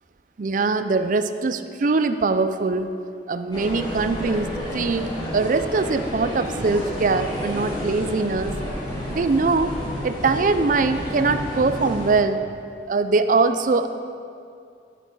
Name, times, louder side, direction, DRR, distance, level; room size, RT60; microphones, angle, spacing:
voice 1, 0.4-2.9 3.3-8.5 9.1-9.7 10.0-12.4 12.9-13.9, right 3 dB, 45° right, 10 dB, 0.4 m, -22 dB
sound 1, 3.5-12.1, equal, 25° left, 3.1 m, -30 dB
11.0 x 9.9 x 4.7 m, 2.4 s
head